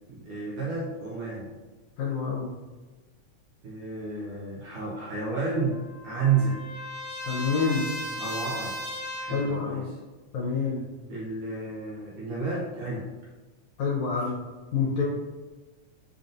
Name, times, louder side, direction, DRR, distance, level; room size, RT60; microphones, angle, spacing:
voice 1, 0.1-1.5 3.6-6.6 8.1-8.8 9.2-10.0 10.5-10.7 11.1-13.3 14.2-14.3, right 4 dB, 75° right, -4 dB, 1.4 m, -31 dB
voice 2, 2.0-2.5 7.3-7.9 9.3-9.9 10.3-10.8 13.8-14.3 14.7-15.0, left 5 dB, 80° left, -4 dB, 1.9 m, -27 dB
Trumpet, 5.6-9.6, left 1 dB, 35° right, 1.5 m, -37 dB
5.2 x 2.6 x 2.5 m, 1.2 s
omnidirectional pair, 3.4 m